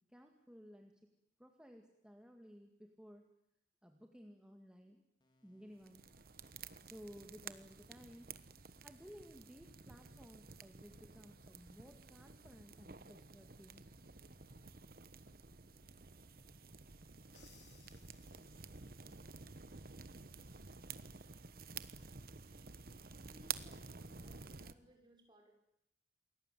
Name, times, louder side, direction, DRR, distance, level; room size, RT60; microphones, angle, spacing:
voice 1, 0.1-1.1 1.4-3.3 3.8-5.0 5.4-6.1 6.8-8.4 8.8-13.9, equal, 5° right, 3 dB, 2.0 m, -57 dB
sound 1, 5.2-24.3, left 1 dB, 25° left, 3.9 m, -76 dB
sound 2, 5.8-24.7, right 6 dB, 55° right, 1.2 m, -52 dB
Crash cymbal, 17.3-19.0, left 7 dB, 85° left, 5.4 m, -66 dB
voice 2, 23.2-25.5, equal, 25° right, 2 dB, 6.4 m, -65 dB
29.0 x 21.0 x 9.3 m, 0.79 s
head